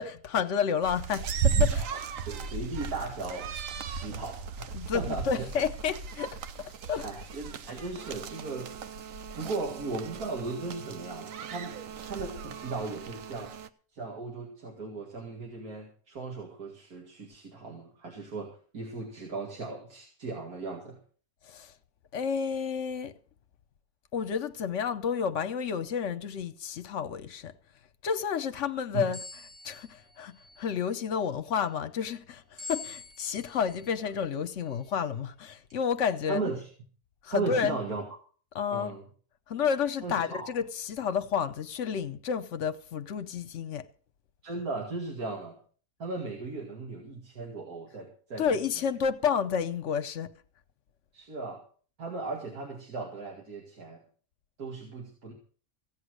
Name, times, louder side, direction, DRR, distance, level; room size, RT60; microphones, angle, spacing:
voice 1, 0.0-1.9 4.7-7.1 21.4-21.7 22.1-23.1 24.1-27.5 28.0-29.2 29.6-36.4 37.2-37.8 38.5-39.0 39.5-43.9 48.4-50.3, left 7 dB, 60° left, 1.0 m, -30 dB
sound 1, 0.8-13.7, right 6 dB, 65° right, 1.2 m, -35 dB
voice 2, 2.2-3.5 3.9-5.4 7.0-8.7 9.4-13.5 13.9-21.0 28.9-29.1 36.3-36.7 37.3-38.0 38.7-39.0 40.0-40.5 44.4-45.6 46.0-48.4 51.1-51.6 52.0-54.0 54.6-55.3, right 3 dB, 85° right, 2.7 m, -37 dB
sound 2, 29.1-30.9 32.6-34.0 34.6-34.8 35.7-35.8, left 4 dB, 20° right, 1.6 m, -45 dB
16.0 x 8.1 x 6.5 m
omnidirectional pair, 1.5 m